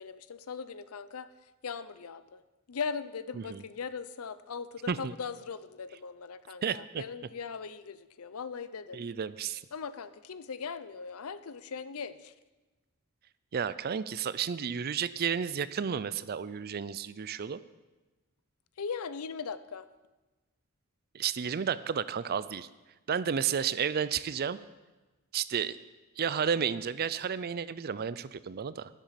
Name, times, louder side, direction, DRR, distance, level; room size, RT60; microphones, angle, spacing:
voice 1, 0.0-2.4 2.7-9.0 9.7-12.3 18.8-19.9, left 5 dB, 80° left, 14 dB, 0.6 m, -39 dB
voice 2, 6.6-7.0 8.9-9.6 13.5-17.6 21.1-22.7 23.1-24.6 25.3-25.8 26.2-28.9, right 7 dB, 45° right, 16 dB, 0.4 m, -32 dB
12.0 x 10.0 x 5.8 m, 1.2 s
head